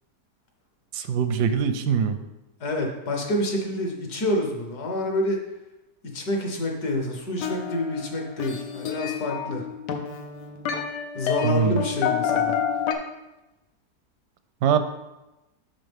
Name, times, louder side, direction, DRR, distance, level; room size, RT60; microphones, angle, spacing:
voice 1, 0.9-2.2 11.4-11.8 14.6-14.8, right 7 dB, 80° right, 10 dB, 1.2 m, -22 dB
voice 2, 2.6-5.4 6.0-9.7 11.1-12.6, left 1 dB, 70° left, 2 dB, 1.6 m, -28 dB
sound 1, 7.4-12.9, left 8 dB, 85° left, 1.4 m, -29 dB
11.0 x 3.7 x 3.5 m, 0.98 s
omnidirectional pair, 1.8 m